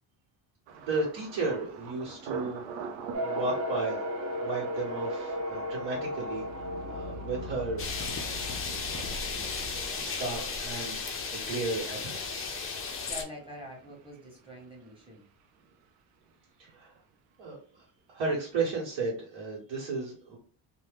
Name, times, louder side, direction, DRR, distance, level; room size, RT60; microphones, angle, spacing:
voice 1, 0.7-2.6 3.1-4.0 4.4-6.4 6.9-7.8 8.2-8.4 8.9-12.9 16.6-16.9 17.4-17.6 18.1-20.4, right 3 dB, 75° right, -7 dB, 1.3 m, -34 dB
Thunder, 0.7-16.4 16.7-17.3 17.7-18.0, right 6 dB, 90° right, 0.7 m, -47 dB
sound 1, 3.1-9.9, equal, 35° right, 0.7 m, -36 dB
sound 2, 7.8-13.2, left 4 dB, 30° left, 0.4 m, -35 dB
voice 2, 13.1-15.2, left 1 dB, 10° right, -2 dB, 1.1 m, -45 dB
2.7 x 2.2 x 3.3 m, 0.42 s
cardioid pair, 125°, 47 cm